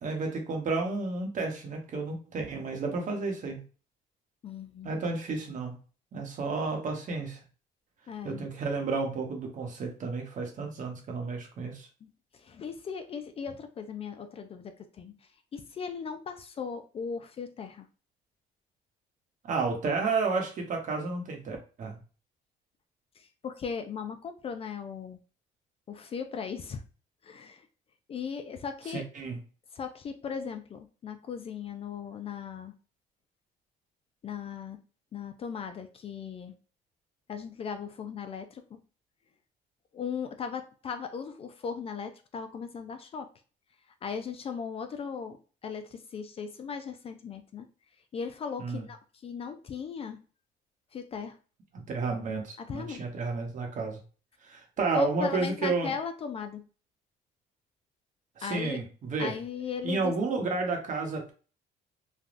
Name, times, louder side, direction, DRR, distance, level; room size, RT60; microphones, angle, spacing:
voice 1, 0.0-3.6 4.8-5.7 6.1-7.4 8.2-11.9 19.4-22.0 28.9-29.4 48.6-48.8 51.7-54.0 54.4-55.9 58.4-59.4 59.8-61.3, right 3 dB, 50° right, 2 dB, 1.0 m, -31 dB
voice 2, 4.4-5.0 8.1-8.4 12.0-15.1 15.5-17.9 23.2-25.2 25.9-26.8 27.2-27.7 28.1-29.0 29.7-32.7 34.2-34.8 35.1-36.6 37.3-38.8 39.9-43.3 44.0-45.4 45.6-47.7 48.1-50.2 50.9-51.4 52.6-53.0 54.9-56.6 58.4-58.8 59.2-60.1, left 6 dB, 35° left, 7 dB, 0.4 m, -37 dB
3.3 x 2.3 x 2.5 m, 0.37 s
cardioid pair, 110°, 17 cm